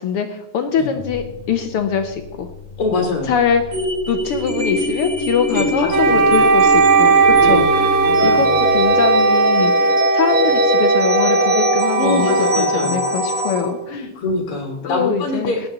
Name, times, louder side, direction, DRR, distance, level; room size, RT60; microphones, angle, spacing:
voice 1, 0.0-2.5 3.2-3.8 4.1-7.9 8.2-14.1 14.8-15.5, left 7 dB, 80° left, 7 dB, 1.2 m, -23 dB
sound 1, 1.0-8.9, equal, 90° right, 5.7 m, -36 dB
voice 2, 2.8-3.3 5.5-6.3 7.3-7.6 8.0-8.7 12.0-13.0 13.9-15.6, left 3 dB, 50° left, 1 dB, 2.3 m, -24 dB
sound 2, 3.7-13.6, equal, 40° right, 4.3 m, -22 dB
Wind instrument woodwind instrument, 5.9-13.9, right 3 dB, 65° right, 1.2 m, -17 dB
18.5 x 8.5 x 3.9 m, 0.97 s
omnidirectional pair, 3.6 m